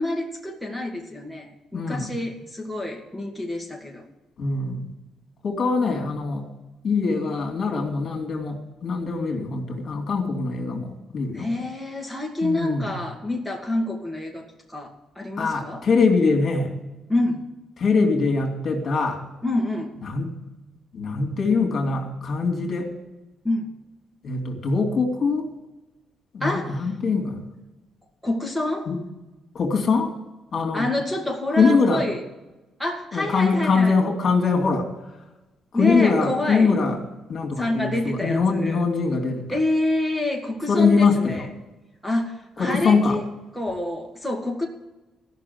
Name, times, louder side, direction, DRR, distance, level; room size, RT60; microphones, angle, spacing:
voice 1, 0.0-4.1 11.3-15.8 17.1-17.4 19.4-19.9 23.4-23.7 26.4-26.8 28.2-28.9 30.7-32.2 32.8-33.9 35.7-36.8 37.6-38.8 39.5-41.5 42.0-43.3 43.5-44.7, left 1 dB, ahead, 0 dB, 1.9 m, -27 dB
voice 2, 1.7-2.1 4.4-4.8 5.4-6.5 6.8-11.5 12.4-12.9 15.4-16.7 17.8-19.2 20.0-20.3 20.9-22.9 24.2-25.5 26.3-27.5 28.9-29.0 29.5-30.1 30.5-30.9 31.6-32.0 33.1-34.9 35.7-37.0 37.3-39.6 40.7-41.5 42.6-43.2, left 4 dB, 50° left, 2 dB, 2.7 m, -22 dB
13.5 x 6.2 x 9.5 m, 1.1 s
cardioid pair, 90°, 0 cm